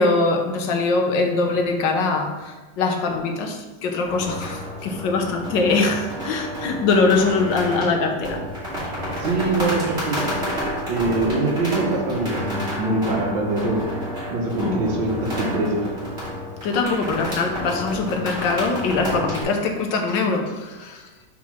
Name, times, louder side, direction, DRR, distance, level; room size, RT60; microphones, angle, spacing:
voice 1, 0.0-8.4 14.6-14.8 16.6-21.1, left 3 dB, 75° left, 3 dB, 1.4 m, -22 dB
sound 1, 4.0-19.4, equal, 30° right, 2.6 m, -30 dB
voice 2, 9.2-10.3 10.9-13.8 14.3-15.9, right 2 dB, 75° right, 1 dB, 1.8 m, -24 dB
4.7 x 4.4 x 5.9 m, 1.2 s
omnidirectional pair, 2.1 m